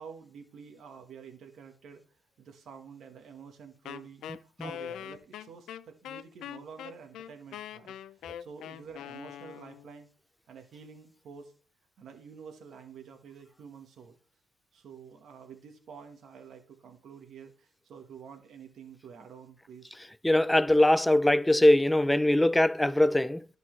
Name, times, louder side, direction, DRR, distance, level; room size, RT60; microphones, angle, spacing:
voice 1, 0.0-2.0 2.4-8.0 8.4-10.1 10.5-11.5 12.0-14.2 14.7-19.9, right 6 dB, 65° right, 1.3 m, -49 dB
Wind instrument woodwind instrument, 3.9-9.9, left 10 dB, 80° left, 0.4 m, -42 dB
voice 2, 20.2-23.4, left 1 dB, 10° left, 0.4 m, -22 dB
11.0 x 5.5 x 3.2 m
cardioid pair, 90°, 0 cm